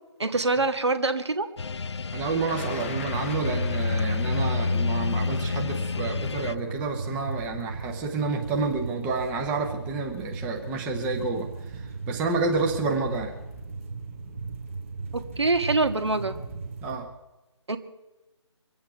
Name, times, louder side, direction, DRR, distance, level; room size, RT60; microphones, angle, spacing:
voice 1, 0.2-1.5 15.1-16.3 17.7-17.8, right 3 dB, 65° right, 9 dB, 1.6 m, -25 dB
sound 1, 1.6-6.6, left 4 dB, 65° left, 0.5 m, -29 dB
voice 2, 2.1-13.4 16.8-17.1, right 3 dB, 10° right, 2 dB, 0.9 m, -29 dB
Thunder, 2.4-8.4 9.3-9.4 10.5-10.8 11.1-11.6, left 6 dB, 25° left, 0.8 m, -44 dB
sound 2, 2.6-17.0, right 4 dB, 30° right, 1.4 m, -37 dB
24.0 x 8.6 x 5.8 m, 1.0 s
figure-of-eight pair, 155°, 15 cm